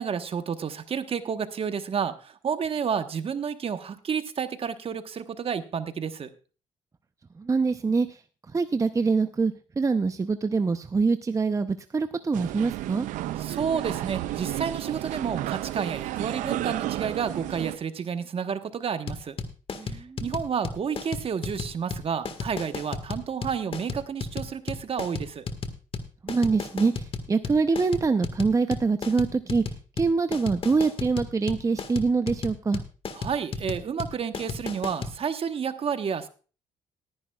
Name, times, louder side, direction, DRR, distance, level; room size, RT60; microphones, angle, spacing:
voice 1, 0.0-6.3 13.4-19.3 19.9-25.4 33.1-36.3, right 7 dB, 45° right, 10 dB, 1.2 m, -30 dB
voice 2, 7.4-8.2 8.5-13.1 19.7-20.3 26.2-29.6 30.0-32.8, right 4 dB, 25° right, 10 dB, 0.6 m, -25 dB
sound 1, 12.3-17.8, right 15 dB, 80° right, 0.6 m, -32 dB
sound 2, 19.1-35.2, left 4 dB, 45° left, 1.6 m, -34 dB
18.5 x 10.5 x 2.3 m, 0.36 s
supercardioid pair, 70°, 13 cm